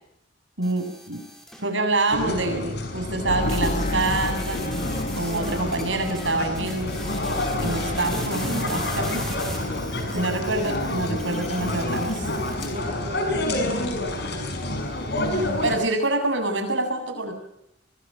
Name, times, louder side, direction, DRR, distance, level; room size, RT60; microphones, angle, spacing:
sound 1, 0.6-1.7 3.5-12.7, equal, ahead, 6.6 m, -40 dB
voice 1, 0.6-1.2 1.6-4.6 5.2-7.0 7.6-9.2 10.1-12.3 15.6-17.3, right 2 dB, 75° right, 6 dB, 7.7 m, -26 dB
sound 2, 2.1-15.8, left 1 dB, 60° left, 5.9 m, -28 dB
sound 3, 3.3-10.8 11.0-11.7 12.0-12.1, left 2 dB, 40° left, 1.1 m, -33 dB
voice 2, 10.0-10.7 12.7-14.6 15.0-15.1, right 1 dB, 40° right, 2 dB, 4.0 m, -40 dB
27.0 x 22.5 x 6.5 m, 0.76 s
head